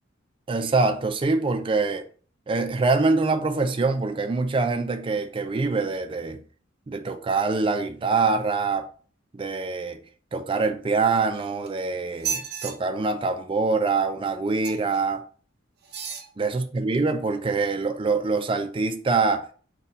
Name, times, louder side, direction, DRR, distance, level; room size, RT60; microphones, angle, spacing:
voice 1, 0.5-2.0 2.5-6.4 6.9-8.9 9.3-10.0 10.3-15.2 16.4-19.5, right 3 dB, 25° right, 0.4 m, -24 dB
sound 1, 11.0-11.7 12.1-12.7 14.6-15.0 15.8-16.3 16.9-17.0, right 6 dB, 55° right, 0.7 m, -33 dB
3.9 x 2.3 x 4.1 m
head